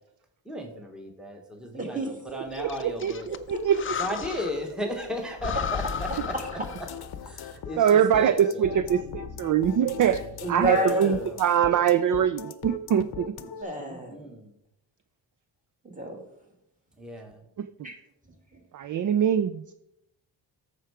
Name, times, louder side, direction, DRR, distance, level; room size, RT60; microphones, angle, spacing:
voice 1, 0.4-3.3 4.0-6.3 6.8-6.9 7.2-8.9 10.7-11.4 13.8-14.5 17.0-17.4, left 1 dB, ahead, 3 dB, 1.2 m, -36 dB
voice 2, 1.7-2.1 3.5-3.6 10.4-11.1 13.6-14.2 15.8-16.2 17.8-18.0 18.5-18.6, left 1 dB, 15° right, 1 dB, 2.1 m, -30 dB
Breathing, 2.5-4.7 5.0-5.1 5.4-7.1, left 7 dB, 30° left, 0.4 m, -35 dB
voice 3, 2.6-4.0 7.8-13.3 18.7-19.6, right 9 dB, 45° right, 12 dB, 0.4 m, -23 dB
sound 1, 5.6-13.6, left 7 dB, 55° left, 0.7 m, -39 dB
13.5 x 4.6 x 4.8 m, 0.80 s
cardioid pair, 115°, 45 cm